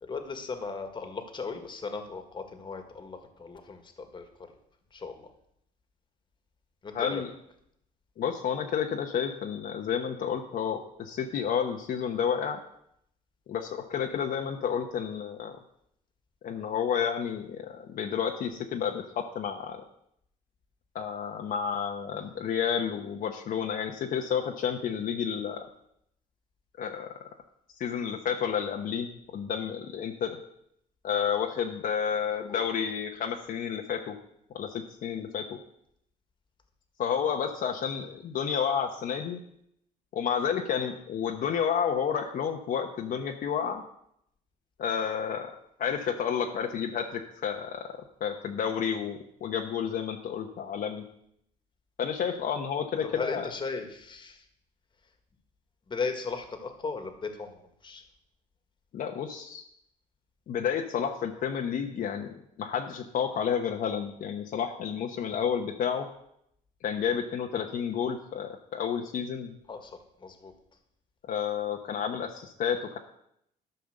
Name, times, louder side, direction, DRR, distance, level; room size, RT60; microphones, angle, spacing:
voice 1, 0.0-4.3 4.9-5.3 6.8-7.2 32.5-32.6 53.0-54.4 55.9-58.0 69.7-70.5, left 4 dB, 30° left, 6 dB, 1.7 m, -37 dB
voice 2, 6.9-7.3 8.2-12.6 13.5-15.5 16.4-19.8 20.9-25.6 26.8-27.1 27.8-30.4 31.0-34.2 34.5-35.6 37.0-39.4 40.1-43.8 44.8-47.9 48.2-51.1 52.0-53.5 58.9-59.6 60.5-66.1 66.8-69.5 71.3-73.0, left 7 dB, 55° left, 2 dB, 1.0 m, -31 dB
12.0 x 5.6 x 6.6 m, 0.74 s
cardioid pair, 110°, 17 cm